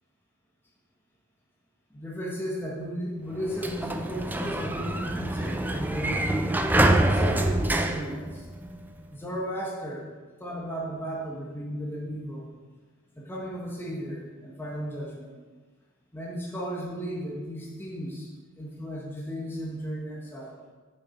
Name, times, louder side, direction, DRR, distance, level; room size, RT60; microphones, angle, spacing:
voice 1, 1.9-8.5 9.1-10.1 10.4-12.5 13.1-15.3 16.1-20.5, equal, 10° left, -4 dB, 1.3 m, -35 dB
Sliding door, 3.3-9.0, right 1 dB, 10° right, 0.5 m, -26 dB
7.3 x 7.1 x 5.1 m, 1.4 s
head